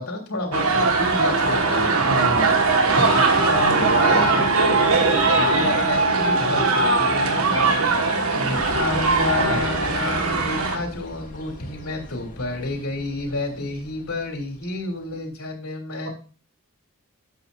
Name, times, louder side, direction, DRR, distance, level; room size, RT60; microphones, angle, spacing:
voice 1, 0.0-1.9 2.9-16.1, left 2 dB, 90° left, 0 dB, 3.2 m, -30 dB
sound 1, 0.5-10.8, right 3 dB, 85° right, 1.7 m, -20 dB
voice 2, 2.0-2.6 3.7-4.4 9.4-9.6, right 1 dB, 65° right, 0 dB, 3.4 m, -28 dB
sound 2, 8.5-15.0, left 1 dB, 40° left, 2.2 m, -38 dB
12.5 x 8.4 x 2.7 m, 0.36 s
head